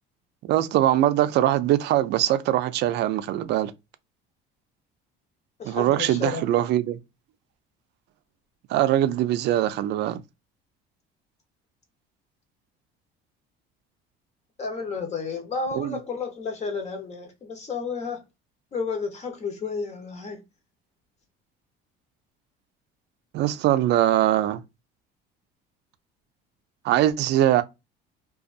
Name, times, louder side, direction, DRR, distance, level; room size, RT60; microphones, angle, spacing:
voice 1, 0.4-3.7 5.7-7.0 8.7-10.2 15.8-16.0 23.3-24.6 26.8-27.6, right 13 dB, 60° right, 0.4 m, -22 dB
voice 2, 5.6-6.5 14.6-18.2 18.7-20.4, left 4 dB, 35° left, 0.9 m, -31 dB
2.5 x 2.3 x 2.4 m
cardioid pair, 115°, 20 cm